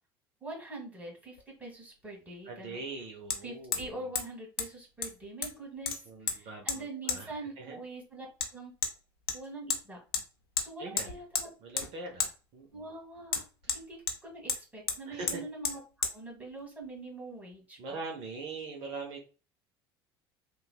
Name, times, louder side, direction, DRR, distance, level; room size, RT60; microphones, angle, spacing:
voice 1, 0.4-2.8 3.4-6.0 6.2-8.7 9.3-10.0 10.6-11.5 12.7-15.8 16.1-18.0, right 2 dB, 10° right, -2 dB, 1.5 m, -44 dB
Hammer, 1.4-1.5 3.3-3.4 3.7-4.3 4.6-4.7 5.0-5.6 5.9-6.4 6.7-6.8 7.1-7.2 8.4-8.5 8.8-8.9 9.3-9.8 10.1-10.3 10.6-10.7 11.0-11.5 11.8-11.9 12.2-12.3 13.3-14.2 14.5-14.6 14.9-15.0 15.3-15.4 15.6-15.8 16.0-16.1, left 6 dB, 80° left, 0.5 m, -32 dB
voice 2, 2.4-4.1 6.1-7.8 10.8-11.2 11.6-12.9 13.6-13.8 15.1-15.4 17.8-19.3, right 3 dB, 55° right, 2 dB, 0.7 m, -42 dB
3.1 x 2.3 x 2.3 m, 0.34 s
hypercardioid pair, 70°, 12 cm